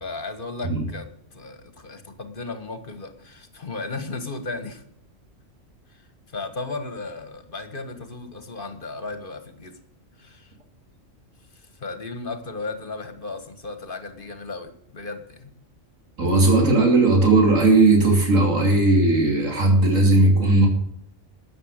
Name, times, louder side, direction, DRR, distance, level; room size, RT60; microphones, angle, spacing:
voice 1, 0.0-4.8 5.9-9.8 10.2-10.5 11.5-15.5, left 3 dB, 40° left, 8 dB, 1.8 m, -35 dB
voice 2, 16.2-20.7, right 2 dB, 80° right, 1 dB, 3.5 m, -17 dB
13.5 x 9.0 x 6.6 m, 0.71 s
omnidirectional pair, 1.4 m